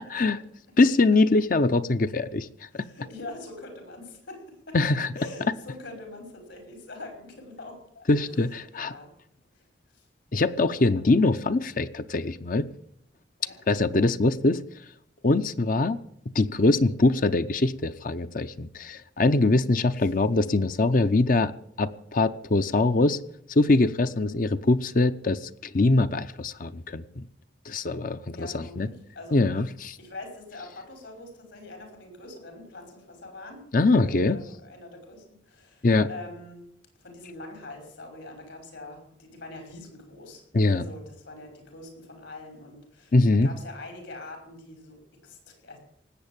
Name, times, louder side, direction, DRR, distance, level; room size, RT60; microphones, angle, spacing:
voice 1, 0.8-2.5 2.7-2.8 4.7-5.1 8.1-8.9 10.3-12.7 13.7-14.6 15.2-16.0 16.3-21.5 21.8-23.2 23.5-27.2 27.7-28.9 29.3-30.0 33.7-34.4 35.8-36.1 40.5-40.8 43.1-43.5, left 2 dB, 45° left, 0.7 m, -23 dB
voice 2, 2.7-4.8 5.2-9.1 9.5-9.7 9.9-10.1 10.8-10.9 13.4-13.9 20.0-20.1 20.5-20.6 24.0-24.4 28.3-29.4 30.0-36.6 37.0-40.4 40.7-45.8, left 2 dB, 75° left, 5.4 m, -44 dB
18.5 x 8.2 x 8.8 m
head